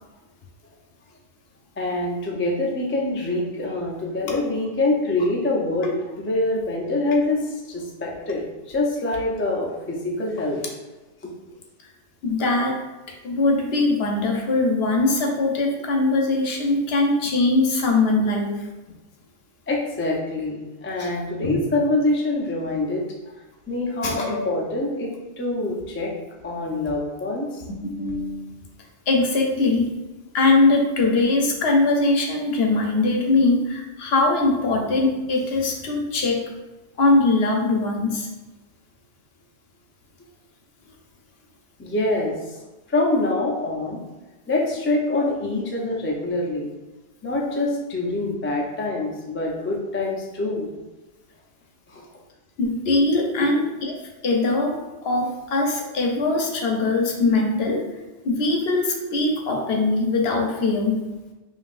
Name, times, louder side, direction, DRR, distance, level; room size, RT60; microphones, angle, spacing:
voice 1, 1.8-10.6 11.2-11.3 19.7-23.3 23.7-26.1 26.4-27.6 41.8-42.6 42.9-44.0 44.5-46.7 47.2-50.7 51.9-52.1, left 2 dB, 20° left, -1 dB, 0.3 m, -25 dB
voice 2, 12.2-12.8 13.2-18.7 21.0-21.1 21.4-21.5 24.0-24.6 28.0-28.4 29.1-29.9 30.3-36.4 37.0-38.3 52.6-53.9 54.2-57.9 58.2-61.0, left 2 dB, 65° left, 1 dB, 0.9 m, -21 dB
5.2 x 2.7 x 2.5 m, 1.1 s
omnidirectional pair, 1.2 m